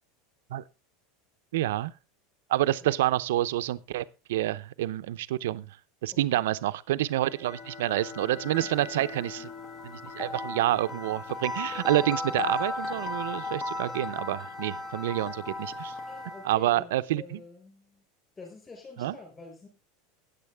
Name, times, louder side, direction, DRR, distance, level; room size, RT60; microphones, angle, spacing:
voice 1, 1.5-1.9 2.5-5.7 6.0-9.4 9.8-15.9 16.4-17.4 19.0-19.1, right 14 dB, 80° right, 0.6 m, -28 dB
voice 2, 6.1-6.5 8.6-9.0 9.4-9.6 10.1-10.2 16.1-18.0 18.4-19.7, left 4 dB, 15° left, 4.9 m, -48 dB
sound 1, 7.1-16.6, left 3 dB, 30° left, 1.2 m, -36 dB
13.5 x 9.2 x 3.4 m
supercardioid pair, 170°, 0 cm